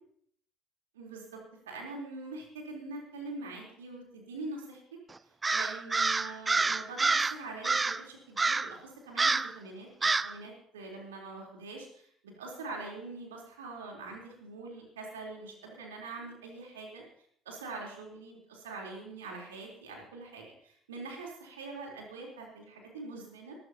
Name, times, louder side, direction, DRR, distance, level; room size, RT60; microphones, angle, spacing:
voice 1, 1.0-1.4 1.7-4.8 5.5-17.0 17.5-23.6, right 3 dB, 80° right, 0 dB, 3.6 m, -44 dB
Crow, 5.4-7.4 7.6-8.0 8.4-8.8 9.2-9.5 10.0-10.3, right 3 dB, 25° right, 0.5 m, -27 dB
24.0 x 13.5 x 2.9 m, 0.66 s
figure-of-eight pair, 55°, 0 cm